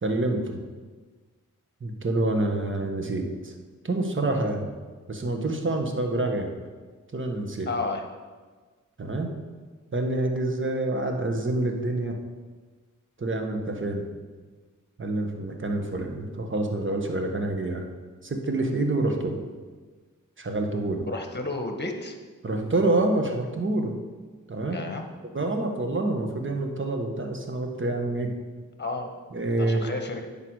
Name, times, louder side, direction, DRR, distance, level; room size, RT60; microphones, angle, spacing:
voice 1, 0.0-0.6 1.8-3.5 3.8-4.7 5.1-6.6 7.1-7.7 9.0-9.4 9.9-12.2 13.2-14.1 15.0-17.9 18.2-19.4 20.4-21.1 22.4-24.0 24.5-24.9 25.2-28.4 29.3-29.9, right 2 dB, 40° right, 3 dB, 1.3 m, -27 dB
voice 2, 7.7-8.0 21.1-22.2 24.7-25.0 28.8-29.1 29.6-30.3, left 3 dB, 35° left, 5 dB, 1.3 m, -31 dB
9.9 x 5.9 x 4.8 m, 1.4 s
cardioid pair, 60°, 32 cm